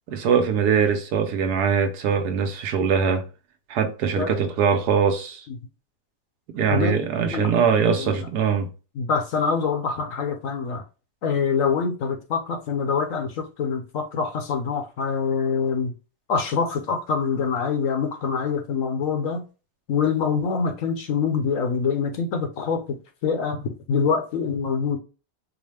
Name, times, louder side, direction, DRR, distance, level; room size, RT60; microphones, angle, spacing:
voice 1, 0.1-3.2 3.7-5.4 6.5-8.7, right 6 dB, 70° right, 1.1 m, -22 dB
voice 2, 6.7-7.5 7.9-8.2 9.0-10.8 11.2-15.9 16.3-19.4 19.9-22.8 23.2-25.0, left 5 dB, 60° left, 1.0 m, -25 dB
4.8 x 2.1 x 3.3 m
omnidirectional pair, 1.9 m